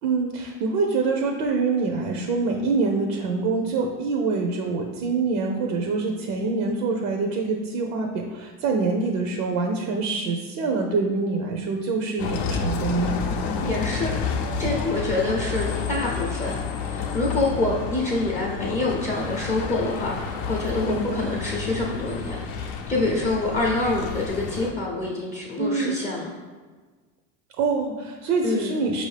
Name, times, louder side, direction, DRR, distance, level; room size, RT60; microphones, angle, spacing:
voice 1, 0.0-13.1 20.8-21.3 25.6-26.0 27.6-29.1, right 4 dB, 75° right, 3 dB, 0.6 m, -25 dB
Bus, 12.2-24.7, left 5 dB, 80° left, 0.6 m, -30 dB
voice 2, 13.6-14.2 14.6-16.6 16.9-26.3 28.4-28.8, left 2 dB, 20° left, -4 dB, 0.5 m, -26 dB
4.7 x 2.6 x 3.2 m, 1.4 s
supercardioid pair, 120°, 39 cm